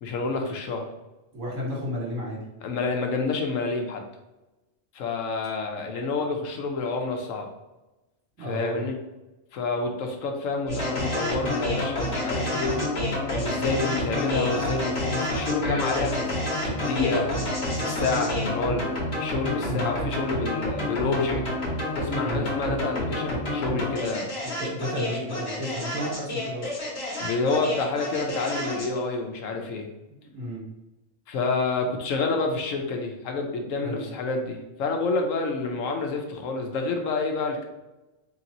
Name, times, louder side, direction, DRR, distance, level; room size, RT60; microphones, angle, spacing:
voice 1, 0.0-0.9 2.6-4.0 4.9-7.5 8.4-9.0 9.5-12.9 13.4-18.9 19.2-21.4 22.0-24.3 27.2-29.9 31.3-37.6, left 3 dB, 85° left, 3 dB, 1.1 m, -28 dB
voice 2, 1.3-2.4 8.4-8.8 19.7-19.9 22.2-22.5 24.4-26.7 30.2-30.7 33.8-34.0, equal, 85° right, -4 dB, 1.8 m, -32 dB
sound 1, 10.7-29.0, left 1 dB, 55° left, 1.4 m, -29 dB
3.3 x 2.9 x 3.8 m, 1.0 s
omnidirectional pair, 1.3 m